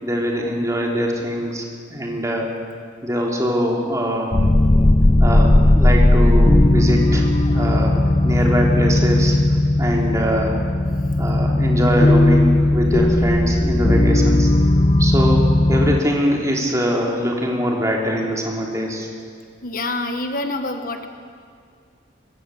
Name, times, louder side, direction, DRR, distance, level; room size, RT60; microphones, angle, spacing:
voice 1, 0.0-2.5 3.0-4.3 5.2-9.4 9.8-10.6 11.2-14.5 15.0-15.4 15.7-19.1, equal, 15° right, -1 dB, 3.6 m, -23 dB
sound 1, 4.3-16.0, left 1 dB, 25° left, 0.6 m, -16 dB
voice 2, 19.6-21.1, left 2 dB, 45° left, 6 dB, 1.4 m, -26 dB
24.5 x 22.0 x 7.9 m, 2.2 s
head